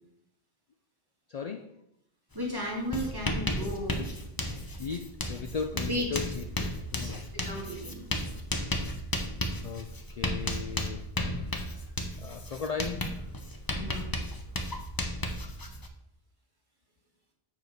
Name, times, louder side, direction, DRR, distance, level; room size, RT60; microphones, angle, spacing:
voice 1, 1.3-1.8 4.8-6.5 6.9-7.3 9.4-11.1 11.4-11.9 12.2-13.2, left 6 dB, 70° left, 7 dB, 0.3 m, -37 dB
Writing, 2.3-2.5 2.7-15.9, left 1 dB, 20° left, 0.7 m, -34 dB
voice 2, 2.3-4.1 5.7-6.1 7.0-7.1 7.4-8.0 13.8-14.1, left 1 dB, 20° right, -3 dB, 2.2 m, -34 dB
6.6 x 5.0 x 6.6 m, 0.80 s
omnidirectional pair, 1.2 m